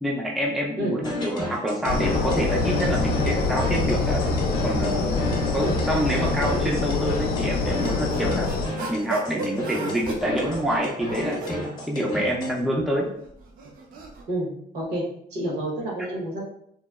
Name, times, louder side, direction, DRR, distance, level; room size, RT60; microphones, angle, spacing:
voice 1, 0.0-4.2 4.6-5.1 5.5-8.5 8.9-13.1, equal, ahead, -2 dB, 0.4 m, -27 dB
sound 1, 1.0-12.6, left 2 dB, 25° left, 0.7 m, -33 dB
sound 2, 1.9-8.7, left 3 dB, 65° left, 0.4 m, -25 dB
sound 3, 7.5-11.6 12.5-14.2, right 3 dB, 60° right, 0.5 m, -36 dB
voice 2, 14.7-15.0 15.3-16.5, right 1 dB, 75° right, -2 dB, 1.0 m, -28 dB
2.9 x 2.0 x 2.3 m, 0.71 s
cardioid pair, 110°, 17 cm